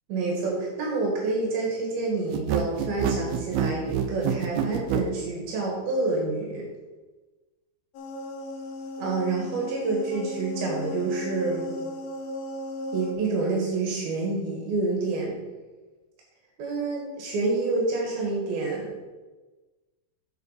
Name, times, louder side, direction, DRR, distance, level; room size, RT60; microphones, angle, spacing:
voice 1, 0.1-6.7 9.0-11.7 12.9-15.4 16.6-18.9, right 3 dB, 70° right, -1 dB, 3.3 m, -28 dB
sound 1, 2.3-5.1, right 9 dB, 90° right, 2.6 m, -26 dB
sound 2, 7.9-13.1, left 1 dB, 70° left, 2.6 m, -36 dB
8.1 x 6.9 x 4.9 m, 1.2 s
omnidirectional pair, 4.5 m